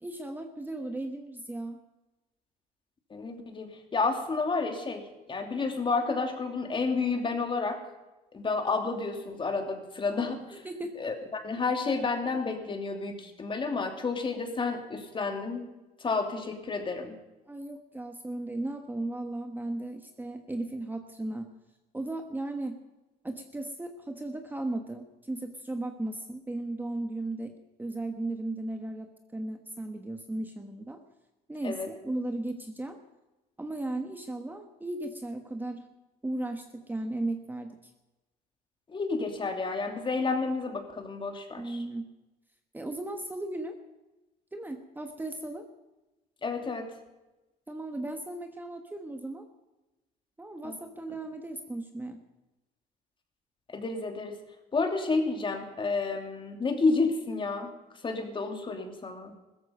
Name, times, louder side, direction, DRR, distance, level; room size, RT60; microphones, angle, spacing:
voice 1, 0.0-1.8 10.5-11.0 17.5-21.5 21.9-22.8 23.2-31.0 31.5-33.0 33.6-35.9 36.2-37.9 41.6-42.0 42.7-43.8 44.5-45.7 47.7-49.5 50.4-52.2, right 2 dB, 10° right, 6 dB, 1.3 m, -36 dB
voice 2, 3.1-7.8 8.3-10.6 10.9-15.6 16.0-17.2 31.6-31.9 38.9-41.8 46.4-46.9 50.6-50.7 53.7-54.3 54.7-57.7 58.0-59.4, left 4 dB, 30° left, 5 dB, 2.7 m, -30 dB
16.0 x 14.0 x 5.3 m, 1.1 s
cardioid pair, 110°, 17 cm